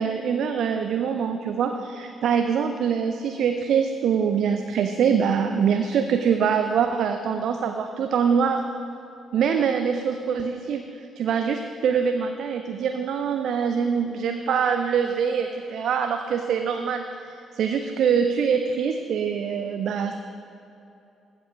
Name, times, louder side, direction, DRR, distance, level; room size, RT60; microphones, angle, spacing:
voice 1, 0.0-8.7 9.3-10.8 11.2-20.2, right 7 dB, 65° right, 6 dB, 0.5 m, -24 dB
15.0 x 5.4 x 5.1 m, 2.7 s
hypercardioid pair, 45°, 0 cm